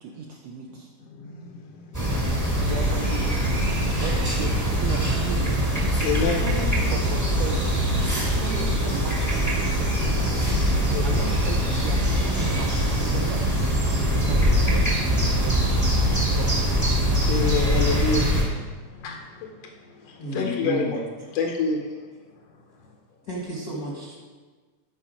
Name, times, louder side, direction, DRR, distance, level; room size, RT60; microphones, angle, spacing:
voice 1, 0.0-0.9 2.6-3.4 4.0-5.6 6.4-7.8 8.3-10.2 11.0-13.5 14.0-16.0 16.3-16.9, right 5 dB, 75° right, 1 dB, 1.5 m, -37 dB
voice 2, 1.1-2.3 6.0-6.4 8.5-8.7 10.9-11.2 17.3-18.3 18.8-19.6 19.8-21.0 21.3-21.9, left 4 dB, 75° left, 1 dB, 1.4 m, -28 dB
sound 1, 1.9-18.4, equal, 10° right, 0.8 m, -23 dB
voice 3, 20.2-21.0 23.2-24.1, right 1 dB, 50° left, -4 dB, 1.1 m, -31 dB
12.0 x 4.5 x 5.0 m, 1.4 s
omnidirectional pair, 3.6 m